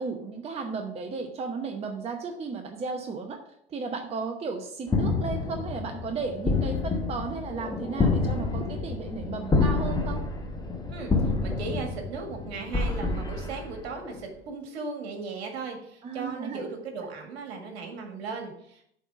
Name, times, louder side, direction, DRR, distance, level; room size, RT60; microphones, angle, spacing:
voice 1, 0.0-3.4 3.7-10.2 16.0-16.6, right 4 dB, 20° right, 4 dB, 0.8 m, -34 dB
sound 1, 4.9-14.2, left 3 dB, 10° left, 1.1 m, -28 dB
voice 2, 10.9-18.9, right 4 dB, 65° right, 3 dB, 1.9 m, -37 dB
7.3 x 4.0 x 5.8 m, 0.70 s
figure-of-eight pair, 85°, 34 cm